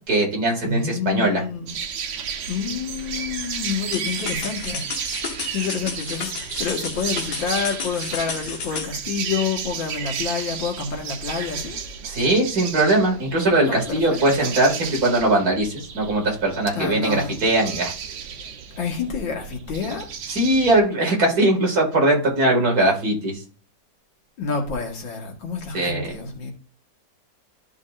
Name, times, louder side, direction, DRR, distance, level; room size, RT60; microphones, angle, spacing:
voice 1, 0.1-1.4 12.1-17.9 20.3-23.3 25.7-26.0, right 2 dB, 55° right, 2.6 m, -20 dB
voice 2, 0.6-1.8 2.5-4.9 5.5-11.8 13.7-14.5 16.7-17.4 18.8-20.1 24.4-26.5, left 5 dB, 85° left, 2.3 m, -28 dB
sound 1, 1.7-20.8, right 7 dB, 85° right, 1.7 m, -33 dB
sound 2, 3.9-8.9, left 5 dB, 65° left, 1.7 m, -33 dB
13.0 x 5.2 x 2.5 m
omnidirectional pair, 2.0 m